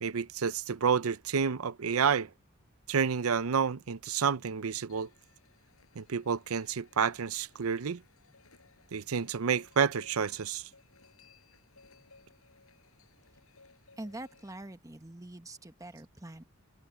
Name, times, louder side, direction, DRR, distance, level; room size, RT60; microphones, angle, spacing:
voice 1, 0.0-2.3 2.9-5.1 6.0-8.0 8.9-10.7, right 6 dB, 75° right, 0.6 m, -29 dB
sound 1, 4.9-14.6, left 4 dB, 85° left, 5.0 m, -62 dB
voice 2, 14.0-16.4, right 1 dB, 15° right, 1.1 m, -44 dB
head